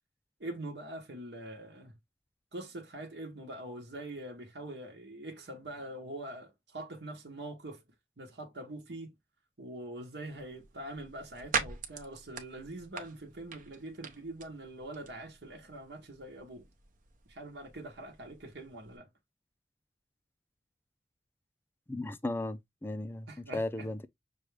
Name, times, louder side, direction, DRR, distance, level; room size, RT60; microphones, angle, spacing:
voice 1, 0.4-1.9 2.5-7.8 8.2-9.1 9.6-16.7 17.3-19.1 23.3-23.9, right 1 dB, 75° right, 1.1 m, -44 dB
sound 1, 10.3-19.0, right 5 dB, 45° right, 0.8 m, -43 dB
voice 2, 21.9-23.3 23.5-24.1, left 2 dB, 10° left, 0.4 m, -35 dB
6.1 x 2.3 x 3.2 m
head